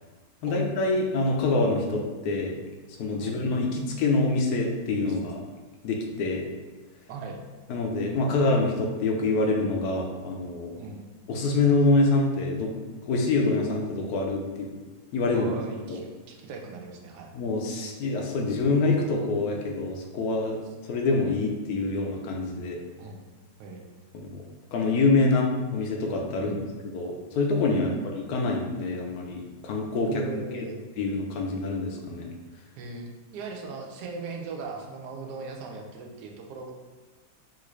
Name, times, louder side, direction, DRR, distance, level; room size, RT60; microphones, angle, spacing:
voice 1, 0.4-2.5 3.0-5.4 5.8-6.4 7.7-10.7 11.3-12.7 13.1-14.7 15.1-15.5 15.9-16.0 17.3-20.6 20.8-22.8 24.1-24.4 24.7-26.6 26.9-27.9 28.3-30.1 30.5-30.7 31.0-32.3, left 3 dB, 75° left, 1 dB, 1.0 m, -25 dB
voice 2, 15.3-17.3 23.0-23.2 23.6-23.8 26.4-26.6 27.8-28.0 30.1-30.8 32.7-36.7, right 4 dB, 80° right, 1 dB, 1.1 m, -38 dB
3.7 x 2.5 x 3.1 m, 1.3 s
omnidirectional pair, 1.8 m